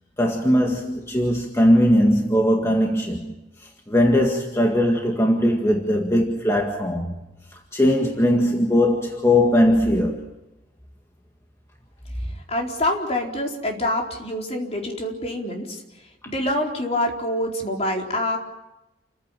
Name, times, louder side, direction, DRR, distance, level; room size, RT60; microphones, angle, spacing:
voice 1, 0.2-3.4 3.9-7.1 7.7-10.2, left 1 dB, 15° left, 1.9 m, -19 dB
voice 2, 12.3-18.4, left 1 dB, 40° left, 4.2 m, -26 dB
29.0 x 15.0 x 9.0 m
head